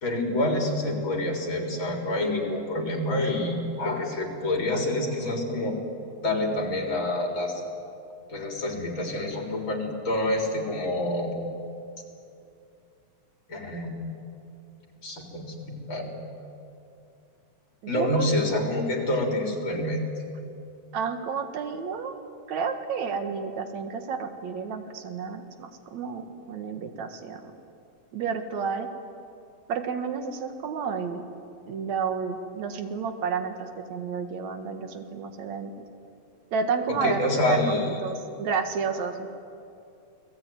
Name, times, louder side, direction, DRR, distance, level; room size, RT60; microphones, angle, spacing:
voice 1, 0.0-5.8 6.2-7.6 8.3-11.3 13.5-14.1 15.0-16.3 17.9-20.1 36.9-37.9, left 1 dB, 40° left, 1 dB, 4.5 m, -27 dB
voice 2, 17.8-18.3 20.9-22.1 22.5-27.5 28.1-28.9 29.7-31.2 31.7-35.8 36.5-39.3, right 5 dB, 70° right, 6 dB, 3.0 m, -31 dB
29.5 x 20.0 x 9.4 m, 2.5 s
omnidirectional pair, 3.4 m